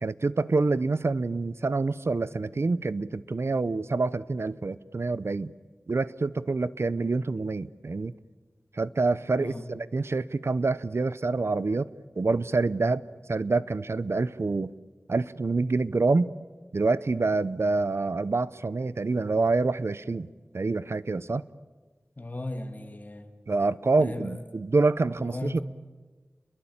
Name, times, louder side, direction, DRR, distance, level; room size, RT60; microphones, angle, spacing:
voice 1, 0.0-5.5 5.9-8.1 8.7-13.0 13.3-14.7 15.1-16.3 16.7-21.5 23.5-25.6, right 3 dB, 75° right, 17 dB, 0.8 m, -27 dB
voice 2, 22.2-23.3 24.0-24.3 25.2-25.6, left 2 dB, 40° left, 6 dB, 2.4 m, -36 dB
29.0 x 22.0 x 8.8 m, 1.3 s
wide cardioid pair, 65°, 5 cm